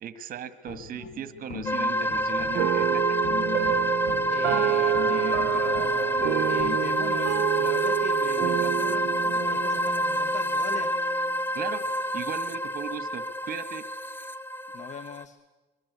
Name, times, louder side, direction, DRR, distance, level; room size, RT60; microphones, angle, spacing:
voice 1, 0.0-3.0 11.5-11.8 12.1-13.8, right 8 dB, 55° right, 12 dB, 1.7 m, -37 dB
sound 1, 0.7-6.8, left 9 dB, 65° left, 1.5 m, -40 dB
sound 2, 1.7-15.2, equal, 10° left, 1.1 m, -28 dB
sound 3, 2.5-11.1, right 15 dB, 70° right, 0.7 m, -28 dB
voice 2, 3.9-11.2 14.7-15.4, left 7 dB, 45° left, 12 dB, 1.2 m, -41 dB
24.5 x 22.5 x 8.2 m, 1.2 s
cardioid pair, 110°, 17 cm